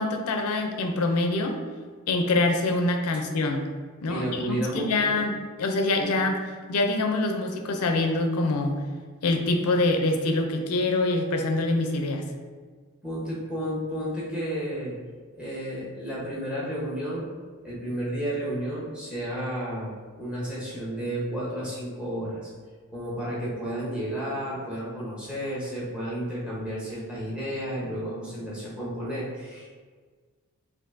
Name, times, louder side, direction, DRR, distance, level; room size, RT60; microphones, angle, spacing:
voice 1, 0.0-1.6 2.1-3.7 4.0-5.3 5.6-6.4 6.7-8.8 9.2-12.2, left 2 dB, 85° left, 4 dB, 0.5 m, -25 dB
voice 2, 4.1-5.2 5.9-6.1 13.0-15.0 15.3-17.3 17.6-19.9 20.2-22.5 22.9-29.8, right 1 dB, 5° right, -7 dB, 0.9 m, -32 dB
4.4 x 2.6 x 2.5 m, 1.5 s
head